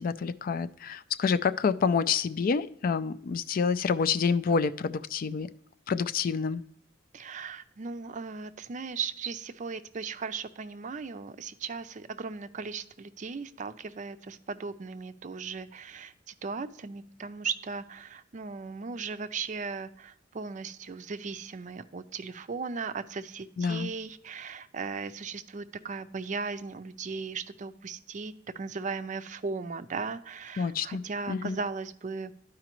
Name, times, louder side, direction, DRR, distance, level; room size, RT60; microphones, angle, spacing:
voice 1, 0.0-5.5 5.9-6.6 23.6-23.9 30.6-31.0 31.3-31.6, left 5 dB, 50° left, 13 dB, 0.3 m, -28 dB
voice 2, 7.1-32.3, right 5 dB, 40° right, 12 dB, 0.4 m, -37 dB
12.0 x 4.9 x 3.0 m, 0.71 s
head